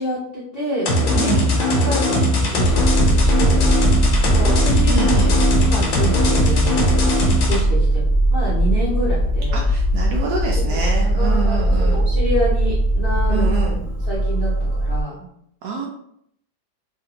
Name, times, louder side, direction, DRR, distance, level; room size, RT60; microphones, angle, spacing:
voice 1, 0.0-5.0 5.6-6.8 7.5-8.0 8.3-9.7 10.6-10.8 11.2-13.5 14.1-15.3, equal, 55° left, -9 dB, 0.6 m, -28 dB
sound 1, 0.8-7.6, left 1 dB, 80° left, 1.4 m, -19 dB
voice 2, 1.2-1.6 4.9-5.4 9.5-12.0 13.3-13.8 15.6-15.9, right 4 dB, 75° right, -1 dB, 1.0 m, -26 dB
sound 2, 2.6-15.0, right 1 dB, 10° left, 0.9 m, -20 dB
sound 3, 2.7-14.1, left 4 dB, 45° right, 1.0 m, -43 dB
3.3 x 2.3 x 2.8 m, 0.72 s
omnidirectional pair, 2.1 m